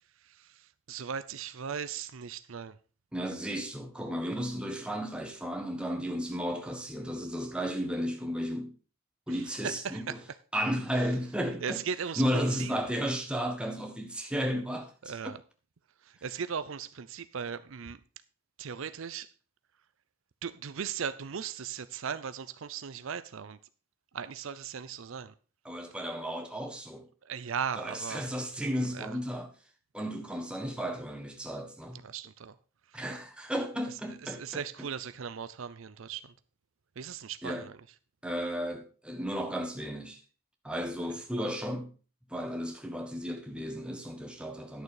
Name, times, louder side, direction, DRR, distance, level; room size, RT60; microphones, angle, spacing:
voice 1, 0.0-2.8 9.3-10.1 11.6-12.8 15.0-15.4 16.0-18.0 18.6-19.3 20.4-23.6 24.1-25.3 27.2-28.3 28.9-29.2 31.9-32.6 32.9-33.0 34.2-36.3 37.0-37.8, right 7 dB, 65° right, 0.5 m, -38 dB
voice 2, 3.1-8.8 9.3-10.1 10.5-11.8 12.2-15.3 25.6-27.1 27.8-29.5 29.9-32.0 32.9-34.6 37.4-37.7 38.2-40.2 40.6-41.9 42.3-44.8, equal, 5° right, 1.3 m, -34 dB
11.0 x 6.8 x 4.8 m
head